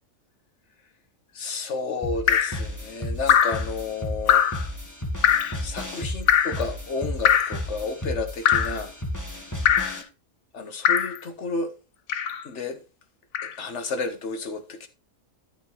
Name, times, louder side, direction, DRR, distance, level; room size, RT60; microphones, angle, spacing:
voice 1, 1.3-4.4 5.6-8.9 10.5-11.7 12.4-12.8 13.4-14.9, left 4 dB, 55° left, 1.6 m, -31 dB
sound 1, 2.0-10.0, left 1 dB, 15° left, 1.7 m, -33 dB
Drip, 2.3-2.6 3.3-3.6 4.3-4.6 5.2-5.6 6.3-6.6 7.2-7.6 8.5-8.8 9.7-10.0 10.8-11.2 12.1-12.4 13.3-13.5, left 9 dB, 80° left, 1.3 m, -21 dB
13.0 x 4.9 x 4.5 m
omnidirectional pair, 1.4 m